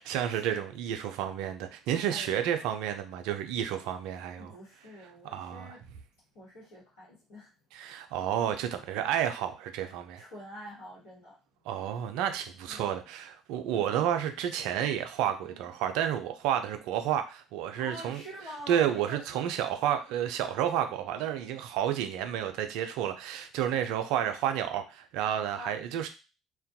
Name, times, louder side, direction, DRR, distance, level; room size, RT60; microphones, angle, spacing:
voice 1, 0.1-4.5 5.3-5.7 7.7-10.2 11.7-18.2 18.7-26.1, right 10 dB, 65° right, 7 dB, 0.3 m, -31 dB
voice 2, 2.1-2.4 4.4-5.8 6.3-7.5 10.1-11.3 12.6-12.9 15.4-15.7 17.8-19.2 23.7-23.9 25.5-25.8, equal, 75° left, -9 dB, 1.1 m, -46 dB
2.3 x 2.1 x 2.6 m, 0.31 s
hypercardioid pair, 55°, 0 cm